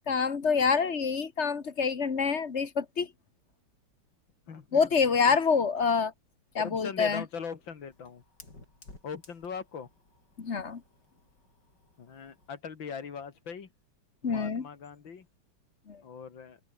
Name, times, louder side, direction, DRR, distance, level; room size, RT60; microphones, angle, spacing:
voice 1, 0.1-3.1 4.7-6.1 6.6-7.2 10.4-10.8 14.2-14.7 15.9-16.0, left 5 dB, 40° left, 1.8 m, -26 dB
voice 2, 4.5-4.9 5.3-5.4 6.6-8.2 9.0-9.9 12.0-13.7 14.2-15.3 16.0-16.6, left 6 dB, 85° left, 3.0 m, -40 dB
Fire, 6.4-12.6, left 2 dB, 65° left, 7.4 m, -57 dB
open air
omnidirectional pair, 2.0 m